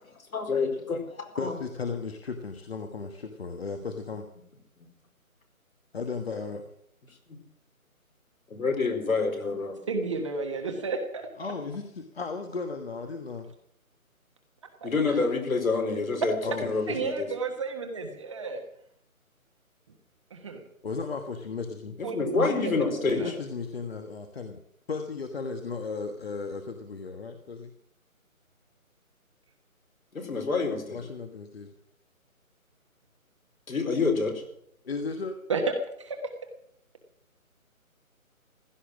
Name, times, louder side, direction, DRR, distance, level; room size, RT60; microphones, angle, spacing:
voice 1, 0.3-1.6 8.5-9.8 14.8-16.3 16.6-17.3 22.0-23.2 30.1-31.0 33.7-34.4, left 4 dB, 70° left, 4.8 m, -27 dB
voice 2, 1.4-4.2 5.9-6.6 11.4-13.5 16.4-17.0 20.8-22.0 23.1-24.6 24.9-27.7 30.9-31.7 34.8-35.4, left 4 dB, 45° left, 1.4 m, -35 dB
voice 3, 9.9-11.3 14.8-15.2 16.9-18.6 20.3-20.6 22.0-23.3 35.5-35.6 36.0-36.2, right 4 dB, 20° right, 1.3 m, -32 dB
16.0 x 12.5 x 6.1 m
figure-of-eight pair, 165°, 43 cm